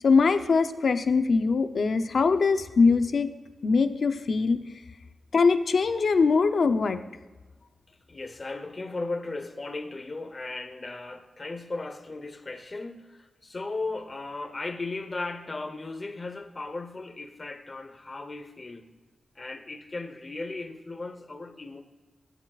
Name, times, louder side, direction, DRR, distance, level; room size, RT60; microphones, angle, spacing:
voice 1, 0.0-3.3 3.6-4.6 5.3-7.0, left 4 dB, 60° left, 9 dB, 0.7 m, -22 dB
voice 2, 7.9-18.9 19.4-21.8, left 3 dB, 35° left, 8 dB, 1.0 m, -36 dB
16.0 x 10.0 x 2.4 m, 1.2 s
wide cardioid pair, 105°, 0 cm